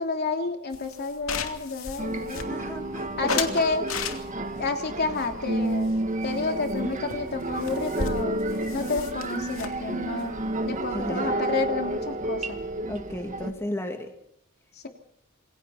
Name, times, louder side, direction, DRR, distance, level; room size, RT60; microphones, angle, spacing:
voice 1, 0.0-2.5 3.2-3.8 4.6-6.0 6.2-10.3 10.7-12.6, left 3 dB, 50° left, 4 dB, 3.0 m, -30 dB
sound 1, 0.7-2.8 3.3-4.6 5.2-6.4 6.7-6.8 7.1-7.2 7.4-11.3, left 5 dB, 85° left, 2.7 m, -35 dB
sound 2, 2.0-13.5, right 1 dB, 40° right, 1.9 m, -31 dB
voice 2, 2.4-3.4 10.8-11.3 12.9-14.1, left 1 dB, 15° left, 4 dB, 2.2 m, -34 dB
27.5 x 22.5 x 4.4 m, 0.76 s
head